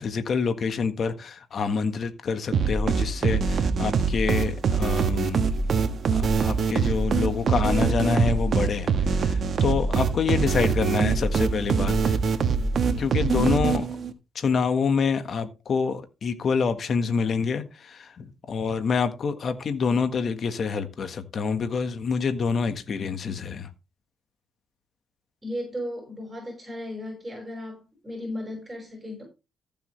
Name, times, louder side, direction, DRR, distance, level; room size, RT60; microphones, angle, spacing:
voice 1, 0.0-5.5 6.1-12.2 13.0-13.8 14.3-23.7, left 5 dB, 50° left, 1.5 m, -27 dB
sound 1, 2.5-14.1, right 5 dB, 55° right, 1.4 m, -24 dB
voice 2, 13.2-13.6 25.4-29.2, left 1 dB, 15° right, 5.8 m, -35 dB
14.5 x 7.1 x 3.3 m
cardioid pair, 90°, 0 cm